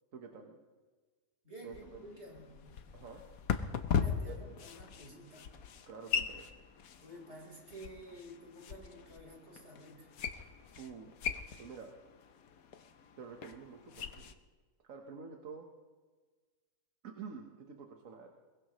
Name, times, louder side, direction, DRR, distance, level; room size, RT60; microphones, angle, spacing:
voice 1, 0.1-0.6 1.6-2.0 2.9-3.2 4.2-4.5 5.9-6.5 10.8-11.1 11.6-11.9 13.2-14.3 14.8-15.6 17.0-18.3, right 5 dB, 70° right, 3 dB, 1.6 m, -48 dB
voice 2, 1.4-2.6 3.9-5.6 7.0-10.1, right 1 dB, 50° right, -1 dB, 4.8 m, -51 dB
sound 1, 1.7-14.3, left 7 dB, 85° left, 1.3 m, -40 dB
22.0 x 21.0 x 3.1 m, 1.4 s
omnidirectional pair, 1.5 m